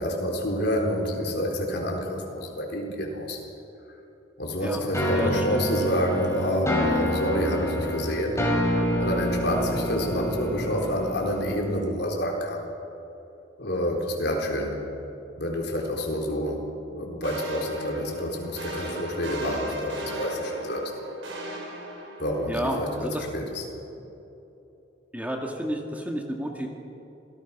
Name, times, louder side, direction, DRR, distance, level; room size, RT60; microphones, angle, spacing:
voice 1, 0.0-3.4 4.4-8.4 9.0-12.7 13.6-14.8 15.4-16.6 16.9-20.8 22.2-23.6, equal, 60° left, 0 dB, 4.0 m, -28 dB
sound 1, 4.9-11.8, left 1 dB, 15° left, 3.8 m, -28 dB
voice 2, 5.1-5.7 22.5-23.2 25.1-26.7, equal, 10° right, 1 dB, 1.7 m, -31 dB
sound 2, 17.2-22.6, right 1 dB, 80° right, 4.7 m, -37 dB
26.5 x 17.5 x 6.0 m, 2.9 s
head